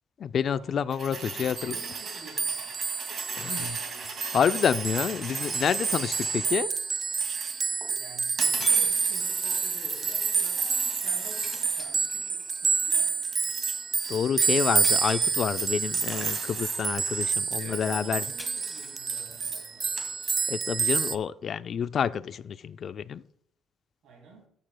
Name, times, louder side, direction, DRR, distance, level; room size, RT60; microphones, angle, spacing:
voice 1, 0.2-1.8 3.4-3.8 4.3-6.7 14.1-18.2 20.5-23.2, left 7 dB, 55° left, 0.3 m, -28 dB
sound 1, 0.9-6.6 7.2-7.9 8.4-11.8 12.2-13.7 14.0-14.3 14.5-14.8 15.4-17.3 17.8-17.9 18.2-20.4, right 5 dB, 60° right, 2.2 m, -36 dB
voice 2, 1.1-2.7 8.0-13.1 17.6-20.1 24.0-24.5, right 3 dB, 75° right, 3.1 m, -49 dB
sound 2, 1.6-21.2, right 5 dB, 40° right, 0.5 m, -29 dB
sound 3, 8.0-8.1 8.6-9.5 11.4-12.7 14.8-15.8 18.4-19.5, left 2 dB, 10° left, 1.3 m, -45 dB
13.5 x 6.8 x 2.2 m
cardioid pair, 90°, 0 cm